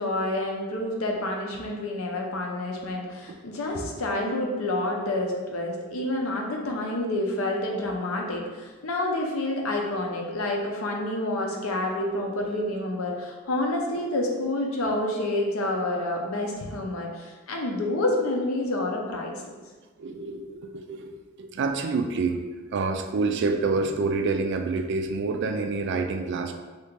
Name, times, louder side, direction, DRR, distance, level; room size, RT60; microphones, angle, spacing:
voice 1, 0.0-19.3, left 1 dB, 80° left, 1 dB, 0.6 m, -28 dB
voice 2, 20.0-22.4 22.7-26.5, right 4 dB, 55° right, 5 dB, 0.3 m, -27 dB
2.9 x 2.8 x 3.5 m, 1.3 s
head